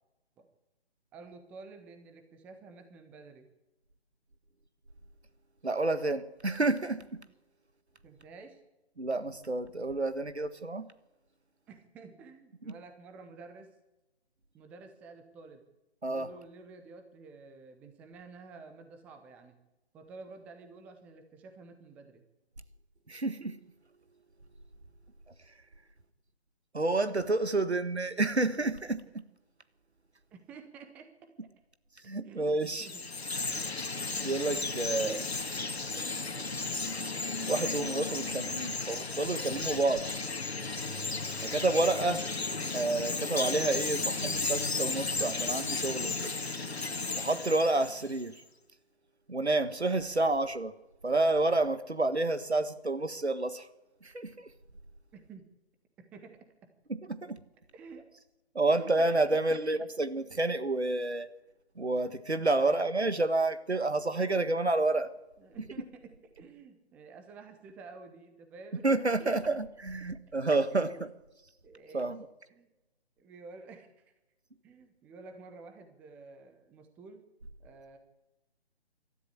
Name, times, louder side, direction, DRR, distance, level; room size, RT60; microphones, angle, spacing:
voice 1, 1.1-3.5 8.0-8.6 11.7-13.7 14.5-15.6 16.0-19.6 19.9-22.2 30.3-31.1 31.4-31.5 32.2-33.1 33.5-33.7 34.5-35.2 55.1-55.5 56.0-56.7 57.7-58.1 58.7-59.1 59.3-59.6 62.6-62.9 64.1-64.3 65.4-68.9 69.2-69.3 70.7-71.0 71.6-72.1 72.5-72.7 73.2-73.9 74.6-77.2 77.6-78.0, right 4 dB, 5° right, 0.7 m, -50 dB
voice 2, 5.6-7.2 9.0-10.9 12.7-12.8 16.0-16.3 23.1-23.6 26.7-29.2 32.0-32.9 33.9-35.2 36.0-36.1 37.4-40.1 41.4-42.3 42.7-46.3 47.1-48.4 49.3-50.7 51.0-53.7 54.0-54.5 56.9-57.4 58.5-61.3 61.7-65.1 68.8-71.1 71.9-72.2, right 2 dB, 85° right, 1.7 m, -29 dB
Chirp tweet, 32.6-48.2, left 3 dB, 75° left, 2.0 m, -34 dB
25.0 x 13.0 x 8.5 m
figure-of-eight pair, 145°, 32 cm